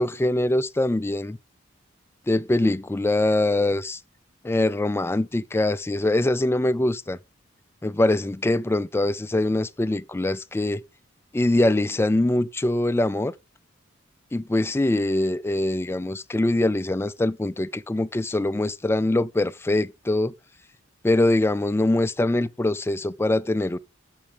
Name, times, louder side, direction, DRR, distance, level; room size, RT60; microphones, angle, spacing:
voice 1, 0.0-1.4 2.3-4.0 4.4-7.2 7.8-10.8 11.3-13.3 14.3-20.3 21.0-23.8, left 1 dB, 10° left, 0.4 m, -23 dB
7.1 x 5.4 x 4.9 m
head